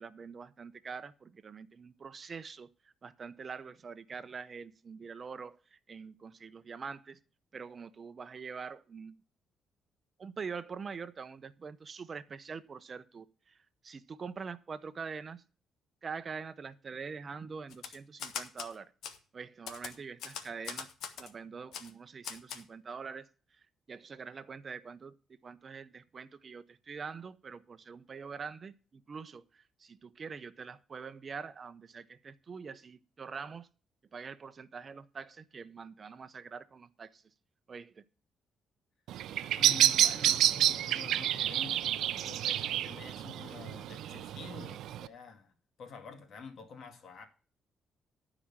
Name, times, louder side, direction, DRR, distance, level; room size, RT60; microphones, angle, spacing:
voice 1, 0.0-7.2 7.5-9.1 10.2-15.4 16.0-18.9 19.3-20.9 21.2-25.2 25.4-33.7 34.1-37.2 37.7-38.1, right 5 dB, 40° right, 14 dB, 0.6 m, -44 dB
Typewriter, 17.7-18.7 19.0-19.2 19.7-21.3 21.7-21.9 22.2-22.6, left 7 dB, 80° left, 1.3 m, -41 dB
Bird vocalization bird call bird song, 39.1-45.1, right 12 dB, 80° right, 0.5 m, -29 dB
voice 2, 39.6-45.5 45.8-47.2, left 5 dB, 65° left, 6 dB, 2.3 m, -48 dB
11.5 x 5.0 x 7.2 m, 0.37 s
cardioid pair, 90°, 0 cm